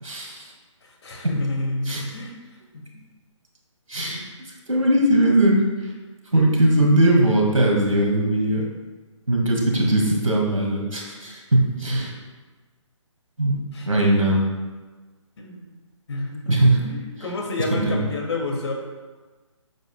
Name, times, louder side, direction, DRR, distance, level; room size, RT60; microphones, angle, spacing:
voice 1, 0.0-0.5 1.9-2.0 3.9-4.2 4.7-5.6 6.3-8.7 9.3-12.1 13.4-13.6 13.9-14.4 16.5-16.8 17.7-18.0, right 1 dB, 85° right, -1 dB, 2.1 m, -19 dB
voice 2, 0.8-2.3 13.7-13.9 15.4-15.7 16.1-16.5 16.8-18.7, left 2 dB, 55° left, -1 dB, 2.4 m, -29 dB
11.0 x 7.9 x 2.3 m, 1.3 s
figure-of-eight pair, 140°, 17 cm